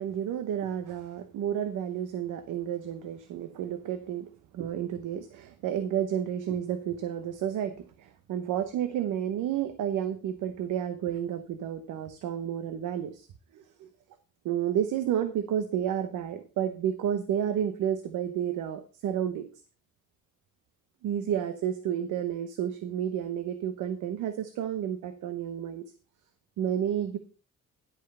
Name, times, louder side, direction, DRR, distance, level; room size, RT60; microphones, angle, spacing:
voice 1, 0.0-4.3 4.5-13.3 13.5-13.9 14.4-19.4 21.0-25.8 26.6-27.2, right 9 dB, 85° right, 9 dB, 0.9 m, -31 dB
11.0 x 5.3 x 5.5 m, 0.37 s
cardioid pair, 165°, 31 cm